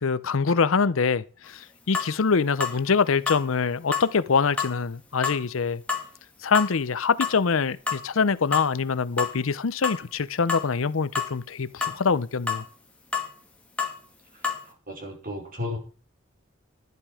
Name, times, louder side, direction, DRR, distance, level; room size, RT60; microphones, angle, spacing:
voice 1, 0.0-5.8 6.4-12.7, left 5 dB, 75° left, 0.6 m, -24 dB
sound 1, 1.4-1.5 1.9-2.1 2.6-2.8 3.3-3.4 3.9-4.1 4.6-4.8 5.2-5.4 5.9-6.1 6.5-6.7 7.2-7.4 7.9-8.0 8.5-8.7 9.2-9.4 9.8-10.0 10.5-10.7 11.1-11.3 11.8-12.0 12.5-12.6 13.1-13.3 13.8-14.0 14.4-14.6, left 5 dB, 5° left, 2.2 m, -28 dB
voice 2, 14.3-15.8, left 2 dB, 45° right, 4.8 m, -35 dB
12.0 x 11.0 x 4.9 m
head